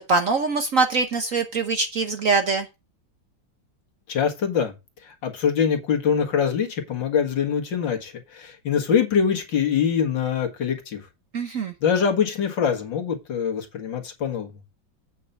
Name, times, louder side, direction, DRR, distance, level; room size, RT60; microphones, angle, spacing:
voice 1, 0.1-2.7 11.3-11.7, right 4 dB, 55° right, 1.0 m, -23 dB
voice 2, 4.1-4.7 5.0-11.0 11.8-14.5, left 7 dB, 65° left, 2.3 m, -24 dB
8.4 x 5.7 x 5.3 m
omnidirectional pair, 2.2 m